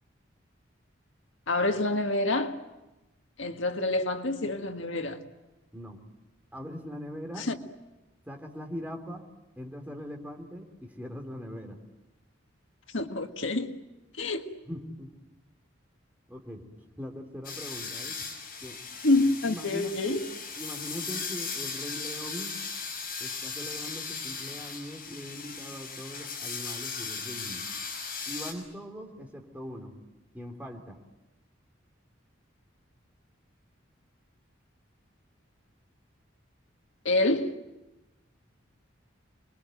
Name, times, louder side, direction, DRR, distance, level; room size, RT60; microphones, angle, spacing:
voice 1, 1.5-2.6 3.4-5.2 7.4-7.6 12.9-13.7 14.2-14.5 19.0-20.2 37.1-37.5, left 2 dB, 75° left, 1.7 m, -27 dB
voice 2, 6.5-7.5 8.3-9.2 9.6-10.7 11.0-11.8 14.7-15.1 16.3-16.6 17.0-18.2 18.6-18.8 19.4-20.3 20.6-22.5 23.2-27.7 28.3-29.9 30.3-31.0, equal, 10° right, 3.3 m, -41 dB
sound 1, 17.4-28.5, left 5 dB, 45° left, 6.5 m, -37 dB
29.0 x 22.0 x 9.2 m
head